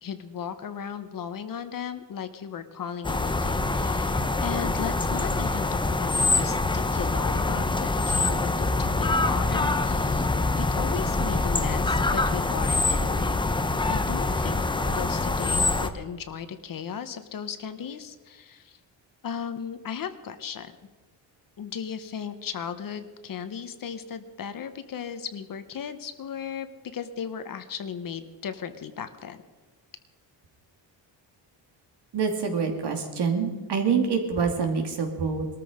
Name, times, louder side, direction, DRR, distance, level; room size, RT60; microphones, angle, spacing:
voice 1, 0.0-10.3 10.6-13.4 13.9-18.8 19.2-20.8 21.6-26.7 26.9-29.4, left 7 dB, 45° left, 10 dB, 1.1 m, -36 dB
sound 1, 3.0-15.9, left 3 dB, 10° left, 0.6 m, -25 dB
voice 2, 32.1-35.5, right 5 dB, 60° right, 4 dB, 2.7 m, -26 dB
20.5 x 13.5 x 5.1 m, 1.3 s
cardioid pair, 160°, 45 cm